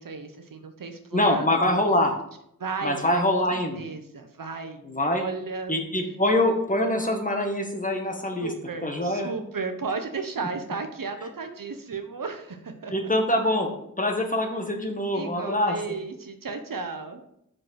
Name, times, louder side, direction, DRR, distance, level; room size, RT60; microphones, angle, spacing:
voice 1, 0.0-1.5 2.6-3.2 3.8-4.8 5.1-5.7 8.4-12.9 15.1-17.2, right 4 dB, 75° right, 6 dB, 1.0 m, -34 dB
voice 2, 1.1-2.1 2.8-3.8 4.8-5.2 5.7-8.5 8.8-9.3 12.9-13.7 14.0-15.7, left 1 dB, 25° left, 3 dB, 1.5 m, -24 dB
6.0 x 5.1 x 6.4 m, 0.75 s
wide cardioid pair, 75°, 34 cm